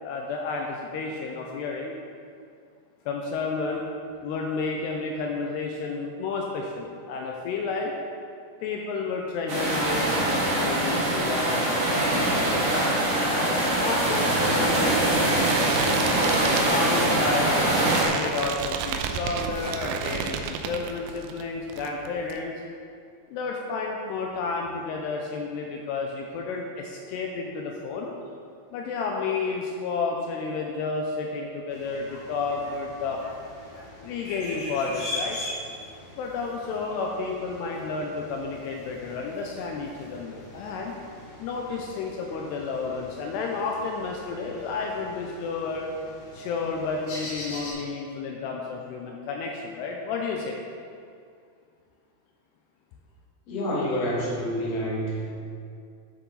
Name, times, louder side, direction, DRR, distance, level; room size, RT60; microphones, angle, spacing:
voice 1, 0.0-1.9 3.1-3.9 4.2-7.9 8.6-15.7 16.7-17.7 18.1-22.5 23.3-28.1 28.7-33.2 34.0-35.4 36.2-40.9 41.4-45.9 46.3-50.6, left 4 dB, 90° left, 0 dB, 2.4 m, -31 dB
sound 1, 9.5-18.0, right 1 dB, 45° right, 2.7 m, -23 dB
sound 2, 13.7-21.4 21.7-22.4, right 7 dB, 85° right, 3.0 m, -33 dB
sound 3, 31.7-47.7, left 1 dB, 65° left, 4.9 m, -41 dB
voice 2, 53.5-55.3, equal, 50° left, -6 dB, 2.2 m, -28 dB
12.0 x 7.0 x 4.0 m, 2.3 s
omnidirectional pair, 5.5 m